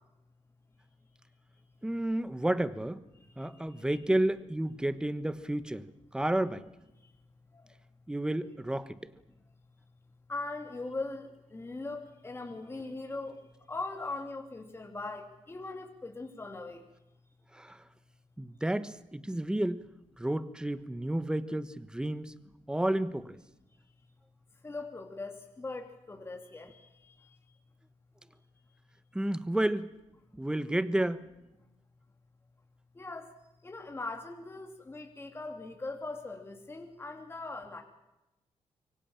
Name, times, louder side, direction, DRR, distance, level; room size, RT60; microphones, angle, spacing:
voice 1, 1.8-3.0 3.4-5.9 6.1-6.7 8.1-9.1 17.5-17.8 18.4-19.8 20.2-22.3 22.7-23.4 29.1-29.9 30.3-31.3, right 1 dB, 5° right, 13 dB, 1.2 m, -31 dB
voice 2, 10.3-13.4 13.7-16.8 24.6-26.8 32.9-33.3 33.6-37.8, left 3 dB, 20° left, 3 dB, 3.0 m, -40 dB
26.0 x 23.5 x 7.3 m, 0.95 s
wide cardioid pair, 125°, 11 cm